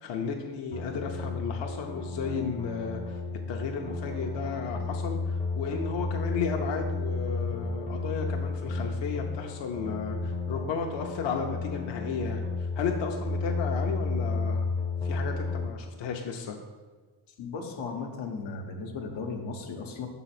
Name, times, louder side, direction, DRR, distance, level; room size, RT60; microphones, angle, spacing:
voice 1, 0.0-3.2 3.5-14.7 15.0-16.6, left 5 dB, 65° left, 2 dB, 0.8 m, -34 dB
sound 1, 0.7-15.7, left 3 dB, 15° left, 0.5 m, -32 dB
voice 2, 17.4-20.1, left 4 dB, 90° left, 2 dB, 1.1 m, -36 dB
6.2 x 4.0 x 5.9 m, 1.4 s
cardioid pair, 120°, 46 cm